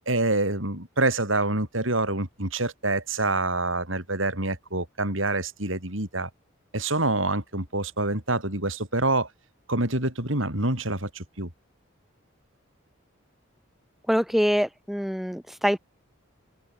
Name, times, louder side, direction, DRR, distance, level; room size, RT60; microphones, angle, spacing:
voice 1, 0.0-6.3 6.7-9.3 9.7-11.5, right 2 dB, 70° right, 7.9 m, -26 dB
voice 2, 14.1-15.8, equal, ahead, 1.4 m, -24 dB
open air
head